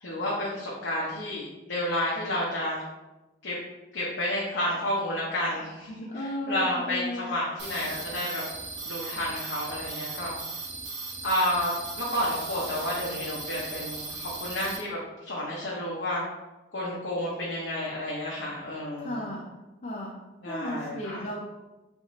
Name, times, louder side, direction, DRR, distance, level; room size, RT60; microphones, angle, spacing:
voice 1, 0.0-2.8 3.4-3.5 3.9-8.4 8.9-10.3 11.2-11.7 12.0-16.2 16.7-19.2 20.4-21.3, left 1 dB, 90° left, -5 dB, 0.7 m, -30 dB
voice 2, 6.1-7.3 19.0-19.5 19.8-20.2 20.5-21.4, left 1 dB, 40° left, -2 dB, 0.4 m, -34 dB
sound 1, 7.6-14.8, right 3 dB, 80° right, 0.9 m, -37 dB
3.5 x 2.5 x 3.9 m, 1.1 s
head